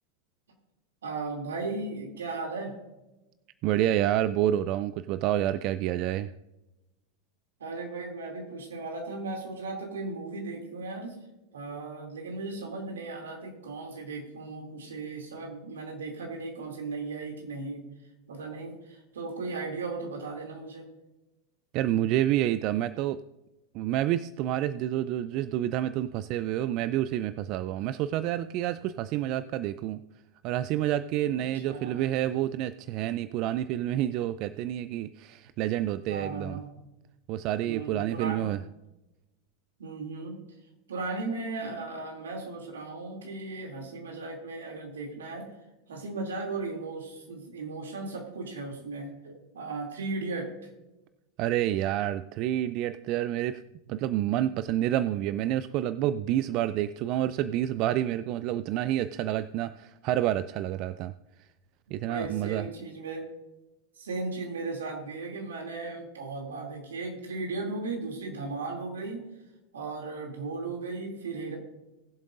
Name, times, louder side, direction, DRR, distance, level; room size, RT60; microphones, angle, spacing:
voice 1, 1.0-2.7 7.6-11.2 11.5-17.8 18.3-20.9 31.4-32.0 36.1-36.7 37.6-38.5 39.8-40.4 40.9-45.5 45.9-50.5 62.1-63.3 64.0-69.3 69.7-71.6, right 3 dB, 80° right, 1 dB, 2.7 m, -36 dB
voice 2, 3.6-6.3 21.7-23.2 23.7-30.0 30.4-36.6 37.3-38.6 51.4-53.6 53.9-61.1 61.4-61.5 61.9-62.7, right 12 dB, 50° right, 15 dB, 0.4 m, -28 dB
20.0 x 7.6 x 2.6 m, 1.0 s
hypercardioid pair, 95°, 0 cm